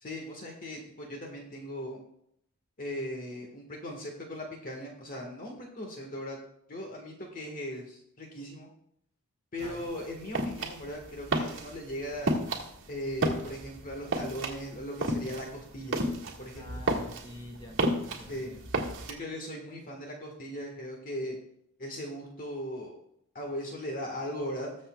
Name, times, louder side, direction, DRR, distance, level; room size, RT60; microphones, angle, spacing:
voice 1, 0.0-2.0 2.8-6.4 6.7-8.7 9.5-12.4 12.9-16.0 16.4-16.8 18.2-18.5 19.0-21.4 21.8-23.0 23.3-24.8, equal, 40° left, 0 dB, 1.6 m, -38 dB
sound 1, 9.6-19.1, right 1 dB, 60° right, 1.8 m, -32 dB
voice 2, 16.5-18.7, left 1 dB, 20° left, 1 dB, 1.9 m, -47 dB
21.0 x 7.1 x 2.3 m, 0.74 s
head